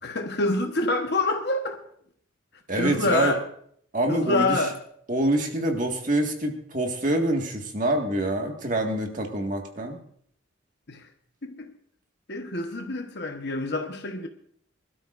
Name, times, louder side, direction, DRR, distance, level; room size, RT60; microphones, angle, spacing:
voice 1, 0.0-1.8 2.8-3.4 4.1-4.8 10.9-11.1 11.4-11.7 12.3-14.3, left 2 dB, 55° left, 1.2 m, -26 dB
voice 2, 2.7-3.3 3.9-4.6 5.1-10.0, right 1 dB, 40° right, 1.8 m, -26 dB
25.0 x 13.0 x 2.6 m
head